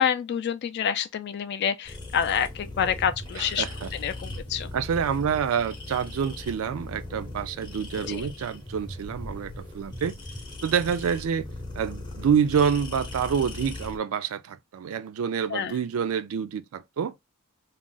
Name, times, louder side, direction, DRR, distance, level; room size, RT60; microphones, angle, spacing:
voice 1, 0.0-3.6 4.0-4.7 8.1-8.3 15.5-15.7, left 8 dB, 50° left, 0.3 m, -27 dB
sound 1, 1.9-14.0, left 2 dB, 20° left, 0.7 m, -39 dB
voice 2, 3.3-3.9 4.7-10.2 10.6-11.5 11.8-17.2, right 7 dB, 70° right, 0.3 m, -27 dB
2.4 x 2.0 x 3.7 m
head